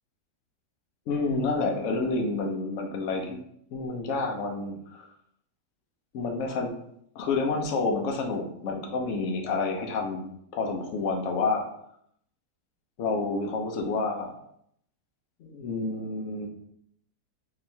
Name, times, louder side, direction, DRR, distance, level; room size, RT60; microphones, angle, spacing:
voice 1, 1.1-3.4 3.7-5.0 6.1-6.7 7.1-10.3 10.5-11.7 13.0-14.3 15.4-16.5, left 3 dB, 60° left, 2 dB, 0.8 m, -29 dB
3.8 x 2.9 x 2.7 m, 0.70 s
omnidirectional pair, 1.8 m